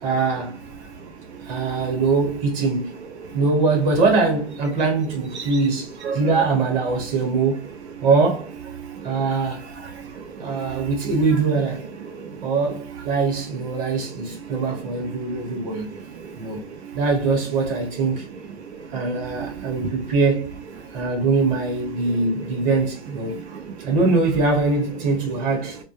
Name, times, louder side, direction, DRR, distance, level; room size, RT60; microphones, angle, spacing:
voice 1, 0.0-0.6 1.4-3.0 3.3-7.7 8.0-8.5 9.0-9.7 10.4-11.9 12.4-16.0 16.4-16.6 16.9-18.2 18.9-20.5 20.9-23.4 23.8-25.8, right 4 dB, 25° right, 0.9 m, -22 dB
voice 2, 10.4-10.8 12.0-12.5 14.3-14.6 15.5-15.6 15.9-16.3 19.4-19.7 22.1-22.6 23.3-23.7, right 6 dB, 80° right, 0.6 m, -35 dB
2.2 x 2.2 x 3.0 m
hypercardioid pair, 140°, 34 cm